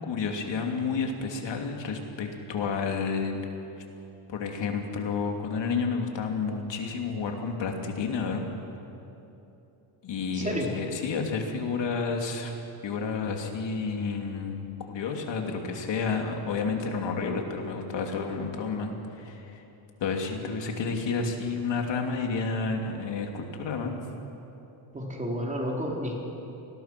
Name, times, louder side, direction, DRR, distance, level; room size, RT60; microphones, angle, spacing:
voice 1, 0.0-3.4 4.3-8.4 10.0-12.5 12.8-19.6 20.0-24.0, left 4 dB, 60° left, 2 dB, 3.1 m, -30 dB
voice 2, 10.3-10.7 24.9-26.2, equal, 15° right, -1 dB, 3.9 m, -31 dB
28.5 x 20.0 x 6.1 m, 3.0 s
cardioid pair, 145°, 48 cm